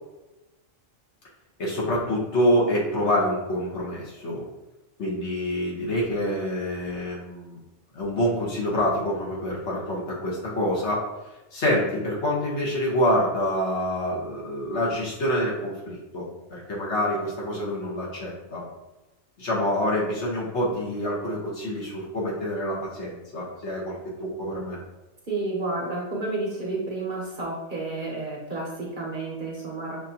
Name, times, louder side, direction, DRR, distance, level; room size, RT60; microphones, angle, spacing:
voice 1, 1.6-4.4 5.0-7.6 7.9-11.1 11.5-18.6 19.4-24.8, equal, 60° left, -5 dB, 1.4 m, -26 dB
voice 2, 25.3-30.0, right 2 dB, 45° right, -3 dB, 0.9 m, -31 dB
6.2 x 2.6 x 2.8 m, 1.0 s
omnidirectional pair, 1.3 m